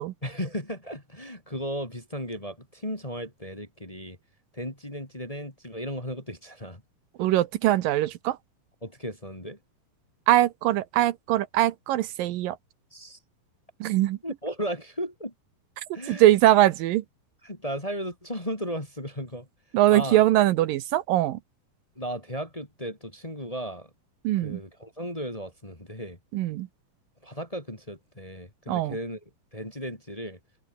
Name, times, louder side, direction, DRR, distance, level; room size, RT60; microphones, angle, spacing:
voice 1, 0.2-4.2 4.5-6.8 8.8-9.6 12.9-13.2 14.2-15.3 15.9-16.4 17.4-19.5 19.9-20.2 21.9-23.9 24.4-26.2 27.2-29.2 29.5-30.4, equal, 10° left, 2.5 m, -35 dB
voice 2, 7.2-8.4 10.3-12.6 13.8-14.2 16.1-17.0 19.7-21.4 24.2-24.6 26.3-26.7 28.7-28.9, right 14 dB, 75° right, 2.5 m, -22 dB
omnidirectional pair, 4.1 m